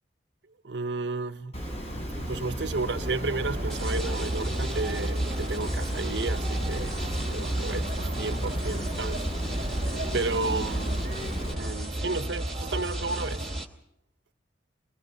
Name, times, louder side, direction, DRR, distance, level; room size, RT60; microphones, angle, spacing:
voice 1, 0.6-1.6 2.1-9.2 10.1-11.1 11.5-13.5, right 3 dB, 70° right, 0.8 m, -33 dB
Water, 1.5-11.5, equal, 35° left, 7.1 m, -35 dB
sound 1, 3.0-13.7, right 1 dB, 35° right, 1.2 m, -32 dB
sound 2, 3.7-13.7, right 2 dB, ahead, 2.4 m, -42 dB
23.5 x 21.5 x 5.4 m
head